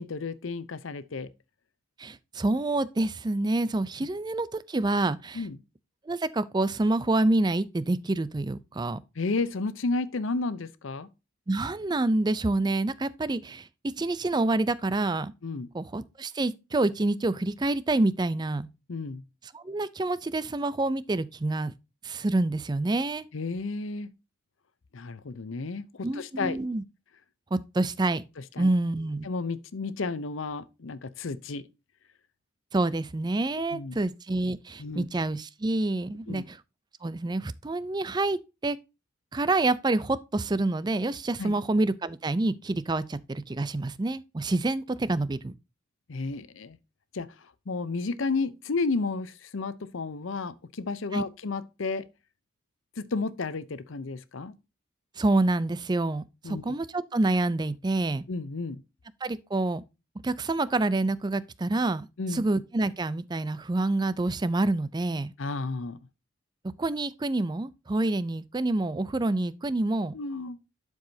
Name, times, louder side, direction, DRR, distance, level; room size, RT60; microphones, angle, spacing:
voice 1, 0.0-1.3 5.3-5.6 9.2-11.1 15.4-15.7 18.9-19.2 23.3-24.1 24.9-26.6 28.6-28.7 29.2-31.7 33.6-34.0 34.8-35.0 36.3-36.4 41.4-41.5 46.1-46.8 47.1-47.3 47.7-52.1 53.0-54.6 56.4-56.8 58.3-58.8 62.2-62.4 65.4-66.0 70.1-70.6, left 3 dB, 70° left, 0.6 m, -32 dB
voice 2, 2.0-5.4 6.1-9.0 11.5-15.3 15.7-18.7 19.5-21.7 22.0-23.3 26.0-26.8 27.5-28.2 28.6-29.3 32.7-36.6 37.0-38.8 39.3-45.5 51.1-51.2 55.2-58.2 59.2-59.8 60.2-65.3 66.8-70.1, right 2 dB, 20° right, 0.4 m, -27 dB
11.5 x 4.9 x 2.7 m
head